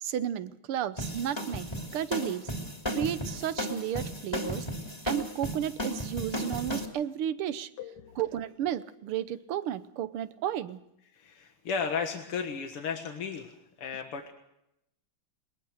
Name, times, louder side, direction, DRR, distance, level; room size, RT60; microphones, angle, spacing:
voice 1, 0.0-2.5 2.9-4.7 5.1-7.7 8.2-10.8, right 10 dB, 85° right, 14 dB, 1.8 m, -33 dB
sound 1, 1.0-6.8, equal, 10° left, 2.9 m, -34 dB
voice 2, 7.8-8.2 11.1-14.3, left 6 dB, 90° left, 4 dB, 2.5 m, -35 dB
22.0 x 19.5 x 6.5 m, 0.81 s
omnidirectional pair, 2.4 m